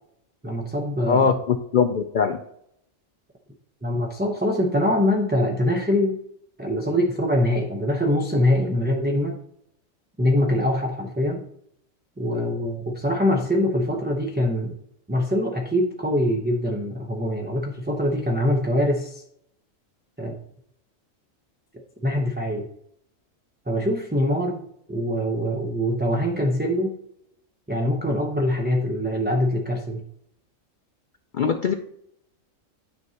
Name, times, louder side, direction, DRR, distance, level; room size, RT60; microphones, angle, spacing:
voice 1, 0.4-1.3 3.8-6.2 6.6-9.4 10.2-11.5 12.2-14.8 15.1-19.2 20.2-20.3 22.0-22.7 23.7-27.0 27.7-30.0, left 1 dB, 10° right, 0 dB, 0.6 m, -23 dB
voice 2, 1.1-2.4 31.3-31.7, left 6 dB, 65° left, 7 dB, 0.5 m, -21 dB
9.5 x 6.1 x 2.8 m, 0.74 s
omnidirectional pair, 1.4 m